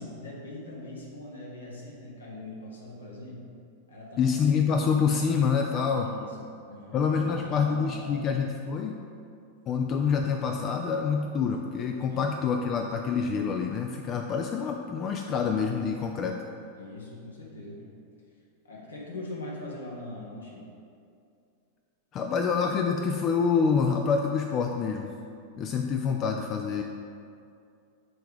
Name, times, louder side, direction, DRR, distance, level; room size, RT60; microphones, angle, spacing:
voice 1, 0.0-3.4 3.9-4.3 5.9-8.3 12.1-12.3 16.7-17.9 18.6-20.7, left 2 dB, 75° left, -3 dB, 1.2 m, -41 dB
voice 2, 4.2-6.1 6.9-9.0 9.7-16.4 22.1-25.1 25.6-26.8, left 6 dB, 30° left, 3 dB, 0.3 m, -26 dB
6.2 x 3.4 x 4.8 m, 2.4 s
figure-of-eight pair, 90°, 0 cm